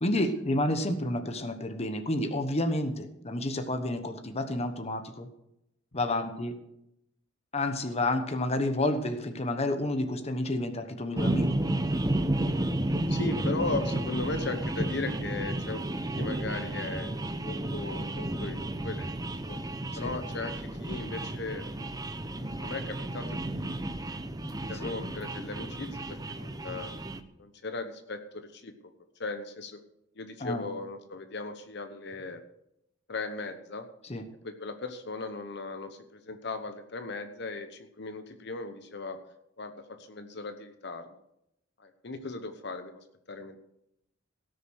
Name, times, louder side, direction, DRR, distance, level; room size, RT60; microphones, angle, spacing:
voice 1, 0.0-5.3 5.9-6.5 7.5-11.5 19.9-20.1 24.8-24.9 30.4-30.7 34.1-34.2, left 1 dB, 35° left, 7 dB, 1.2 m, -30 dB
sound 1, 11.2-27.2, right 1 dB, 20° right, 0.8 m, -32 dB
voice 2, 13.1-15.8 16.1-17.1 17.4-19.6 19.9-21.6 22.3-23.8 24.5-26.9 27.4-28.7 29.2-29.8 30.2-32.4 33.1-33.9 34.4-39.2 39.6-41.1 41.8-43.6, left 3 dB, 60° left, 8 dB, 1.0 m, -37 dB
17.0 x 6.7 x 6.4 m, 0.80 s
head